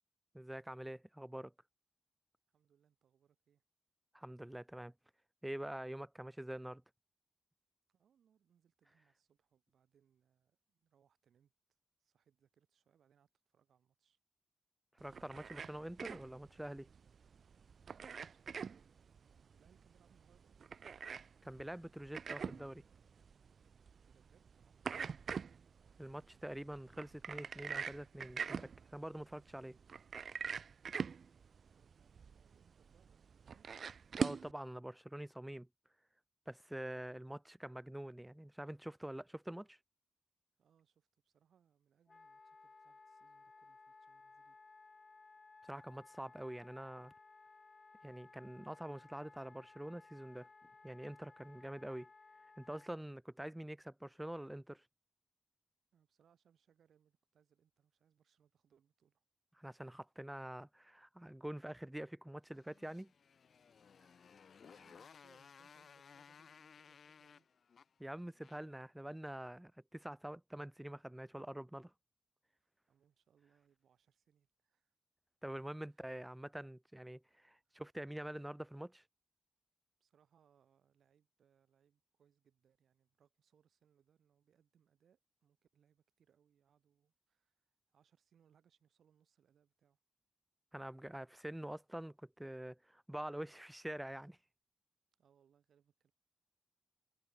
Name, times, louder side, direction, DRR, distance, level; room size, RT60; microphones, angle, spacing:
voice 1, 0.3-1.5 4.1-4.9 5.4-6.8 15.0-16.9 21.4-22.8 26.0-29.8 34.2-35.7 36.5-39.8 45.6-47.1 48.0-50.5 50.8-52.1 52.6-54.8 59.6-63.1 68.0-71.9 75.4-79.0 90.7-94.4, right 1 dB, 5° right, 0.8 m, -46 dB
voice 2, 2.5-3.6 7.9-11.5 12.0-14.2 17.8-20.9 24.0-25.2 31.8-33.7 40.6-44.6 55.9-59.2 64.6-67.5 72.9-74.9 75.9-76.0 77.6-77.8 80.0-90.0 95.2-96.1, right 8 dB, 85° right, 7.6 m, -74 dB
sound 1, 15.0-34.5, right 6 dB, 60° right, 1.1 m, -44 dB
Wind instrument woodwind instrument, 42.1-52.9, left 3 dB, 35° left, 0.9 m, -60 dB
Motorcycle, 62.5-68.8, left 6 dB, 60° left, 1.9 m, -60 dB
wide cardioid pair, 115°, 0 cm